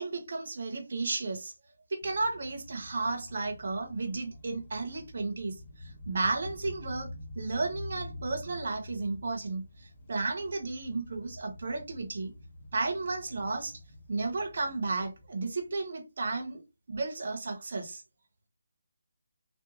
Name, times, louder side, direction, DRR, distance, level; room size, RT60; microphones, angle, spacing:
voice 1, 0.0-1.5 1.9-5.5 6.1-7.1 7.4-9.6 10.1-12.3 12.7-13.7 14.1-16.6 16.9-18.0, right 3 dB, 40° right, 0.6 m, -33 dB
sound 1, 2.0-15.8, left 1 dB, 20° left, 0.5 m, -47 dB
2.8 x 2.2 x 2.5 m
hypercardioid pair, 180°, 0 cm